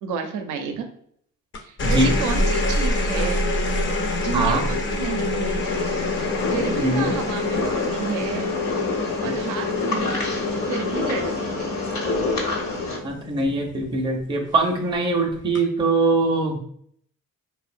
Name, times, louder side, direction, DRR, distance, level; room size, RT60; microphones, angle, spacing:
voice 1, 0.0-0.9 1.6-3.4 4.2-5.7 6.5-8.5 9.2-10.2 10.7-11.7, right 6 dB, 90° right, 6 dB, 0.5 m, -31 dB
sound 1, 1.5-14.1 15.4-15.8, left 2 dB, 40° left, 0.5 m, -26 dB
voice 2, 1.8-2.1 4.3-4.6 6.8-7.1 13.0-16.6, right 2 dB, 15° right, 1 dB, 0.4 m, -22 dB
sound 2, 5.6-13.0, left 3 dB, 65° left, 0.9 m, -28 dB
2.7 x 2.1 x 2.4 m, 0.65 s
cardioid pair, 90°, 30 cm